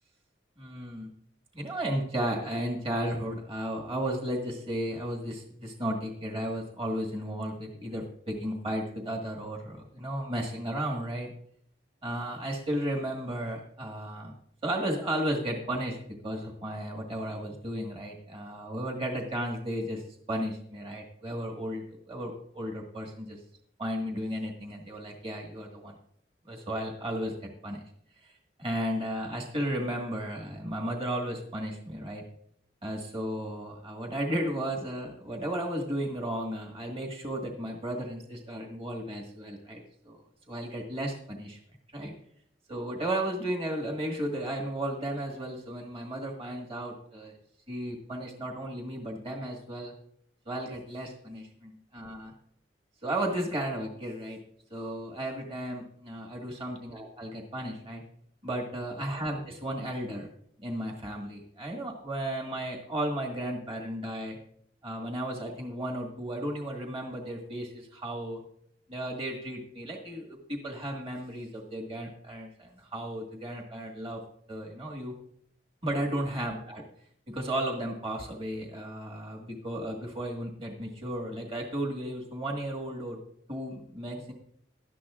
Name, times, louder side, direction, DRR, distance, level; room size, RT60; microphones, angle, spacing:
voice 1, 0.6-1.1 1.5-11.3 12.0-14.3 14.6-16.0 16.2-20.0 20.3-23.4 23.8-25.9 26.5-27.8 28.2-32.2 32.8-40.2 40.5-41.6 41.9-42.1 42.7-47.4 47.7-49.9 50.5-52.3 53.0-54.4 54.7-58.0 58.4-60.3 60.6-64.4 64.8-68.4 68.9-74.2 74.5-75.1 75.8-76.8 77.3-83.2 83.5-84.3, right 1 dB, 30° right, 0 dB, 1.7 m, -34 dB
18.0 x 12.5 x 2.5 m, 0.66 s
head